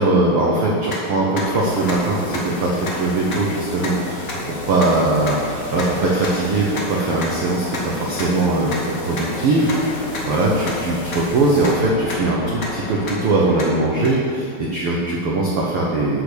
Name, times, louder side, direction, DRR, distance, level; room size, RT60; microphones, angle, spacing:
voice 1, 0.0-16.2, right 2 dB, 80° right, -3 dB, 1.2 m, -20 dB
sound 1, 0.9-1.0 1.4-1.5 1.9-2.0 2.3-2.4 2.9-3.0 3.3-3.4 3.8-3.9 4.3-4.4 4.8-4.9 5.3-5.4 5.8-5.9 6.2-6.3 6.8-6.9 7.2-7.3 7.7-7.8 8.2-8.3 8.7-8.8 9.2-9.3 9.7-9.8 10.1-10.2 10.7-10.8 11.1-11.2 11.6-11.7 12.1-12.2 12.6-12.7 13.1-13.2 13.6-13.7 14.0-14.1, left 3 dB, 55° left, 1.2 m, -28 dB
sound 2, 1.3-13.7, left 1 dB, 75° left, 4.3 m, -32 dB
sound 3, 1.6-11.7, left 1 dB, 40° left, 2.0 m, -41 dB
10.0 x 5.0 x 6.7 m, 2.6 s
omnidirectional pair, 4.0 m